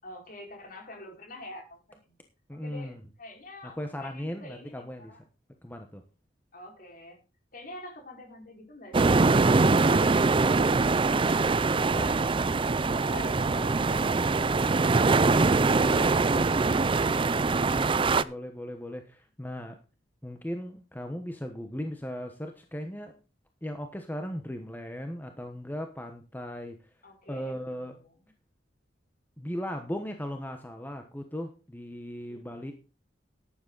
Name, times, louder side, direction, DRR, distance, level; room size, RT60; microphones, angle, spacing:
voice 1, 0.0-2.1 2.5-5.2 6.5-7.2 7.5-12.7 13.1-17.4 27.0-28.1 32.3-32.7, left 1 dB, 50° left, 1 dB, 5.0 m, -47 dB
voice 2, 2.5-3.0 3.6-5.1 5.6-6.0 15.8-19.8 20.2-23.1 23.6-26.8 27.3-28.0 29.4-32.7, equal, 10° left, 5 dB, 1.1 m, -38 dB
sound 1, 8.9-18.2, right 3 dB, 30° right, 0.5 m, -23 dB
12.0 x 10.0 x 4.0 m, 0.33 s
head